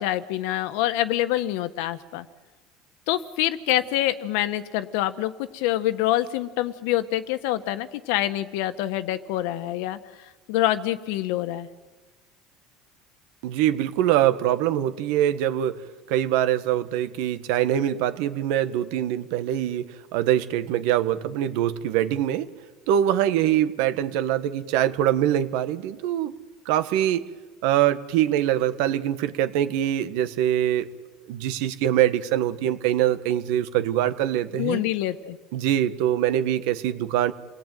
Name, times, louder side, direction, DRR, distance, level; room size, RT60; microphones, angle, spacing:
voice 1, 0.0-2.3 3.1-10.0 10.5-11.7 34.6-35.4, left 14 dB, 75° left, 11 dB, 1.4 m, -26 dB
voice 2, 13.4-15.8 16.1-19.8 20.1-22.5 22.9-26.3 26.6-27.2 27.6-30.9 31.3-34.8 35.5-37.3, right 11 dB, 75° right, 11 dB, 1.5 m, -23 dB
28.5 x 19.5 x 9.3 m, 1.3 s
cardioid pair, 135°, 0 cm